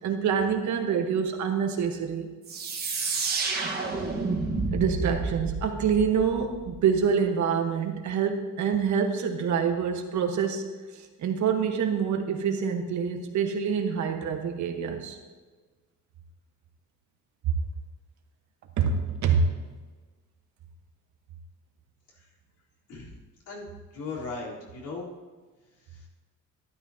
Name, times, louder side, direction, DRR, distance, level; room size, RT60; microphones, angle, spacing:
voice 1, 0.0-2.3 4.7-10.7 10.9-15.1 17.4-17.5 18.8-19.5, right 6 dB, 60° right, 4 dB, 1.3 m, -26 dB
sound 1, 2.5-7.0, right 4 dB, 30° right, 1.4 m, -30 dB
voice 2, 23.9-25.1 25.9-26.0, left 3 dB, 70° left, -6 dB, 3.8 m, -37 dB
13.0 x 12.5 x 2.8 m, 1.4 s
cardioid pair, 165°, 32 cm